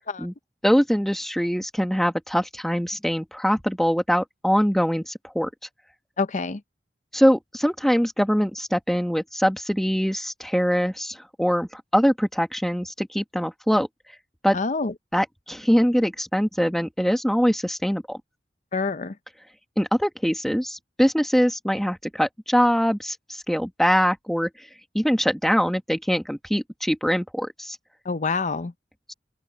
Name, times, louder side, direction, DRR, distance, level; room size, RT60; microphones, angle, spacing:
voice 1, 0.6-5.5 7.1-13.9 14.4-14.6 15.1-18.2 19.8-24.7 24.9-27.8 29.1-29.2, equal, ahead, 1.3 m, -23 dB
voice 2, 6.2-6.6 14.5-14.9 18.7-19.2 28.0-28.7, left 4 dB, 40° left, 0.7 m, -26 dB
open air
head